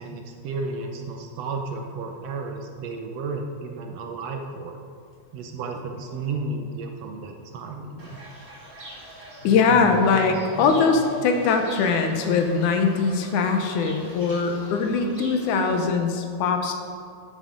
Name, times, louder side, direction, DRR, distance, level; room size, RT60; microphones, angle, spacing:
voice 1, 0.0-4.8 5.3-8.2, right 3 dB, 70° right, 3 dB, 1.7 m, -33 dB
Fowl / Bird, 8.0-15.8, left 2 dB, 20° right, 1.8 m, -41 dB
voice 2, 9.4-16.7, left 5 dB, 85° left, 5 dB, 2.4 m, -21 dB
11.0 x 6.4 x 5.1 m, 2.3 s
omnidirectional pair, 3.4 m